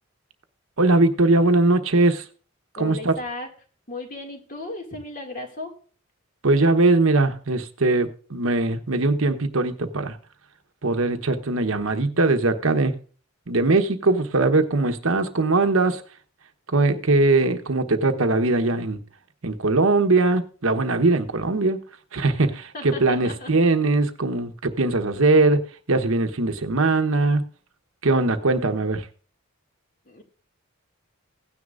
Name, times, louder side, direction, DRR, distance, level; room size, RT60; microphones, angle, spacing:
voice 1, 0.8-2.2 2.8-3.1 6.4-10.2 10.8-12.9 13.5-16.0 16.7-19.0 19.4-21.8 22.1-25.6 25.9-27.4 28.0-29.1, right 2 dB, 70° right, 1.1 m, -20 dB
voice 2, 2.8-3.5 3.9-5.7 22.7-23.5 30.1-30.2, left 2 dB, 40° left, 2.2 m, -35 dB
16.5 x 9.7 x 2.5 m
head